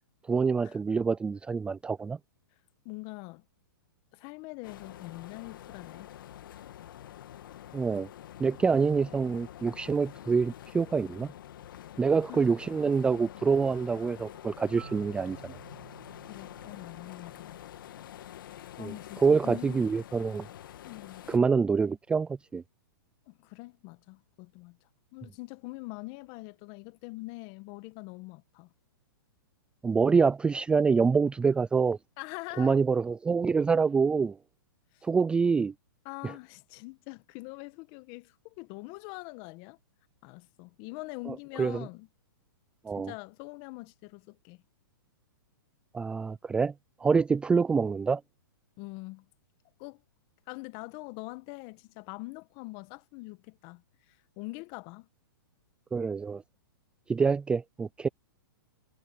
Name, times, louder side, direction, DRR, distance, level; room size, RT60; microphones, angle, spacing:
voice 1, 0.3-2.2 7.7-8.1 8.4-11.3 12.0-15.6 18.8-18.9 19.2-20.5 21.3-22.6 29.8-32.0 32.6-34.4 35.0-35.7 36.2-36.3 41.3-41.9 42.8-43.1 45.9-46.7 47.0-48.2 55.9-56.4 57.1-58.1, right 5 dB, 10° right, 0.4 m, -26 dB
voice 2, 2.8-3.4 4.1-6.1 12.3-12.5 16.2-17.6 18.8-19.9 20.8-21.2 23.3-24.8 25.1-28.7 32.2-32.8 34.9-35.0 36.0-39.8 40.2-42.1 42.9-44.6 48.8-49.3 49.8-50.0 50.5-53.8 54.1-55.1, left 25 dB, 40° left, 1.7 m, -43 dB
sound 1, 4.6-21.4, left 11 dB, 65° left, 2.0 m, -47 dB
Marimba xylophone, 14.8-18.6, right 10 dB, 70° right, 4.5 m, -53 dB
hypercardioid pair, 135°, 12 cm